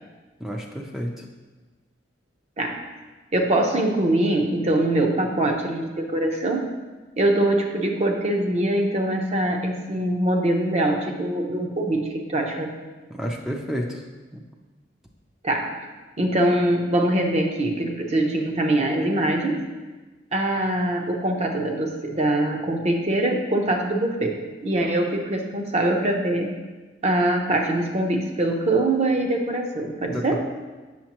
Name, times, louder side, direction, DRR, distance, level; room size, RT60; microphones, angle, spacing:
voice 1, 0.4-1.1 13.2-13.9 30.1-30.4, equal, ahead, 0 dB, 0.5 m, -29 dB
voice 2, 3.3-6.7 7.2-12.7 15.4-15.7 16.2-19.6 20.3-26.6 27.0-30.4, right 1 dB, 35° right, 2 dB, 0.8 m, -23 dB
7.4 x 6.3 x 3.0 m, 1.3 s
head